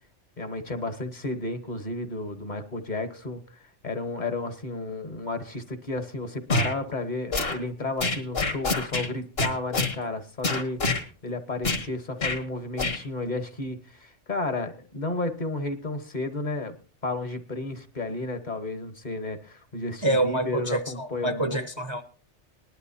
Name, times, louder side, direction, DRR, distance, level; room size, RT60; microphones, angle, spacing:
voice 1, 0.4-3.4 3.8-16.8 17.0-21.6, left 2 dB, 40° left, 1.2 m, -32 dB
sound 1, 6.5-6.7 7.3-7.6 8.0-9.1 9.4-10.0 10.4-11.0 11.6-11.9 12.2-12.4 12.8-13.0, left 3 dB, 55° left, 1.9 m, -26 dB
voice 2, 20.0-22.0, right 1 dB, 30° right, 0.7 m, -27 dB
19.5 x 11.5 x 2.8 m
omnidirectional pair, 1.2 m